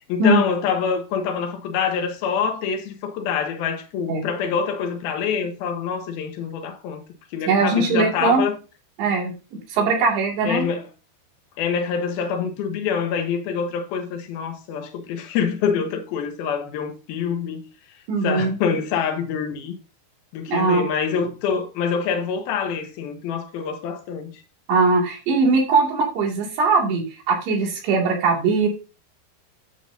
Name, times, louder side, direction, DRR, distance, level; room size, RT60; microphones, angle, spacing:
voice 1, 0.1-7.0 7.3-8.6 10.4-10.9 11.6-17.6 18.2-19.8 20.3-24.4, left 6 dB, 70° left, 2.7 m, -25 dB
voice 2, 7.5-8.4 9.0-9.3 9.7-10.7 18.1-18.6 20.5-20.9 24.7-28.7, right 3 dB, 75° right, 4.6 m, -20 dB
10.5 x 8.1 x 2.7 m
omnidirectional pair, 5.2 m